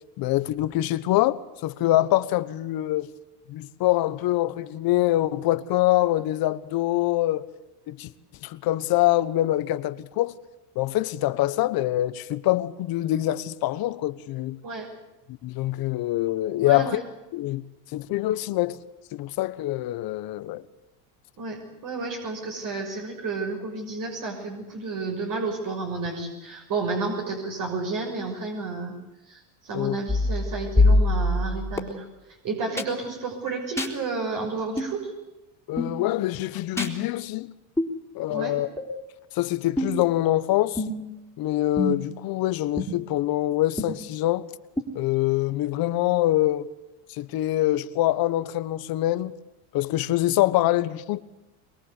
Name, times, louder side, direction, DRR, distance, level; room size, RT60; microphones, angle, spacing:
voice 1, 0.2-3.1 3.5-7.5 7.9-8.1 8.4-10.3 10.7-14.6 15.4-17.0 17.3-17.6 17.9-18.8 19.1-20.6 29.7-30.0 35.7-37.5 38.1-38.7 39.3-40.8 41.4-44.5 44.9-46.7 47.1-49.4 49.7-51.2, left 15 dB, 55° left, 1.3 m, -24 dB
voice 2, 16.6-17.0 21.4-28.9 29.3-32.1 32.4-35.1 38.3-38.5, right 3 dB, 50° right, 6.3 m, -31 dB
sound 1, 30.1-31.8 32.8-32.9 33.8-33.9 34.8-34.9 35.8-36.0 36.8-36.9 37.8-37.9 38.8-38.9 39.8-40.1 40.8-41.1 41.8-42.2 42.8-42.9 43.8-43.9 44.8-44.9, left 2 dB, 5° left, 3.8 m, -24 dB
23.5 x 22.0 x 8.3 m
supercardioid pair, 105°, 43 cm